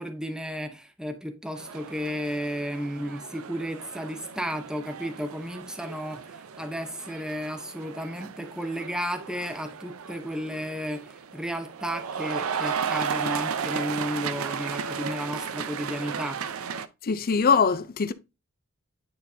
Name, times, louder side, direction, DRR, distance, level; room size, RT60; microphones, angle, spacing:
voice 1, 0.0-16.4, equal, 5° right, 0.8 m, -33 dB
sound 1, 1.6-16.9, right 6 dB, 75° right, 0.5 m, -35 dB
voice 2, 17.0-18.1, left 5 dB, 45° left, 0.5 m, -22 dB
9.4 x 4.0 x 2.7 m
head